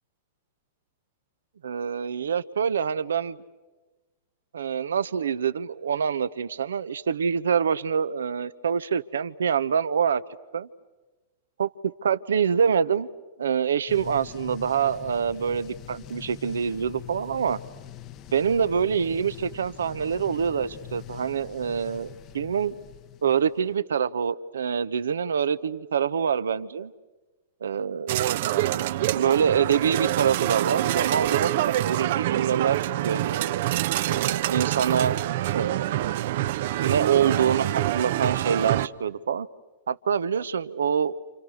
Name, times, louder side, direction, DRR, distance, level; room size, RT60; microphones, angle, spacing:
voice 1, 1.6-3.4 4.5-10.2 10.5-10.7 11.6-13.1 13.4-17.6 18.3-22.8 23.2-26.9 27.6-28.1 29.1-33.5 34.1-35.2 35.5-35.9 36.8-39.5 39.9-41.1, right 7 dB, 80° right, 15 dB, 1.0 m, -25 dB
sound 1, 13.9-23.7, left 10 dB, 40° left, 1.1 m, -43 dB
sound 2, 28.1-38.9, right 14 dB, 60° right, 0.8 m, -26 dB
29.0 x 29.0 x 6.5 m, 1.2 s
hypercardioid pair, 110°, 0 cm